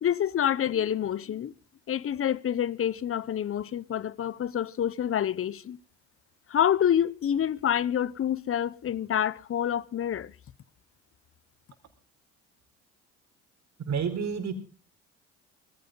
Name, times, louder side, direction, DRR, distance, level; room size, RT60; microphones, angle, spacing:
voice 1, 0.0-1.5 1.9-5.8 6.5-10.3, left 9 dB, 35° left, 0.9 m, -27 dB
voice 2, 13.9-14.5, right 6 dB, 45° right, 4.5 m, -29 dB
20.0 x 15.0 x 4.0 m
hypercardioid pair, 70°, 36 cm